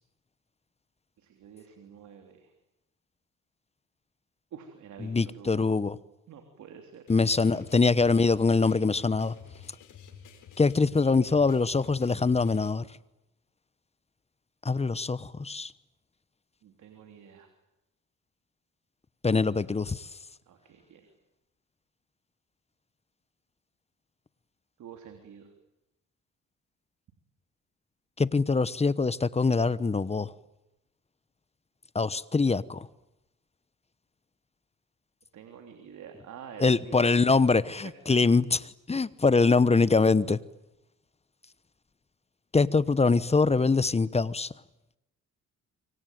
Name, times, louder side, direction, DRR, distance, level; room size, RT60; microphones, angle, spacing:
voice 1, 1.2-2.5 4.5-5.7 6.3-7.1 7.5-7.6 16.6-17.5 20.5-21.1 24.8-25.5 35.3-37.0, right 7 dB, 70° right, 3.3 m, -48 dB
voice 2, 5.0-6.0 7.1-9.3 10.6-12.8 14.6-15.7 19.2-20.0 28.2-30.3 31.9-32.9 36.6-40.4 42.5-44.5, left 4 dB, 20° left, 1.0 m, -24 dB
sound 1, 7.1-12.7, left 7 dB, 80° left, 5.3 m, -50 dB
25.5 x 24.5 x 9.3 m
cardioid pair, 90°, 30 cm